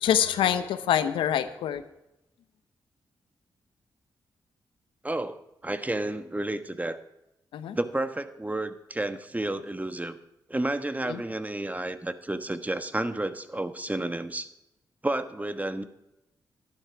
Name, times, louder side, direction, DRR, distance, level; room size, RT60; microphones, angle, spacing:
voice 1, 0.0-1.8 7.5-7.8 11.1-11.2, left 10 dB, 80° left, 11 dB, 0.8 m, -25 dB
voice 2, 5.0-7.0 7.7-10.2 10.5-14.5 15.0-15.8, right 1 dB, 15° right, 10 dB, 1.2 m, -31 dB
11.5 x 11.5 x 5.9 m, 0.90 s
supercardioid pair, 45°, 9 cm